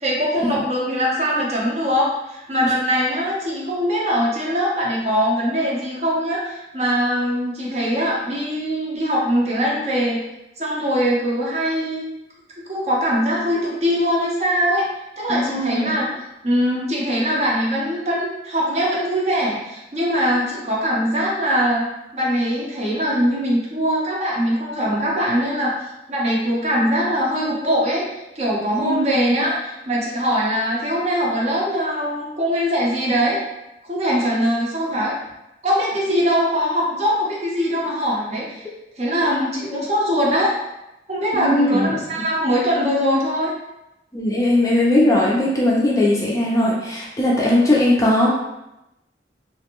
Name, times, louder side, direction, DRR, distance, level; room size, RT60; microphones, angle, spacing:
voice 1, 0.0-10.2 10.6-12.1 12.7-14.9 15.2-16.1 16.4-25.7 26.1-28.0 28.4-33.4 33.8-35.2 35.6-38.7 39.0-40.5 41.1-43.5, equal, 35° right, -4 dB, 0.6 m, -22 dB
voice 2, 15.3-15.9 28.8-29.1 41.3-42.0 44.1-48.3, left 1 dB, 20° left, -4 dB, 0.4 m, -18 dB
2.5 x 2.1 x 2.9 m, 0.89 s
head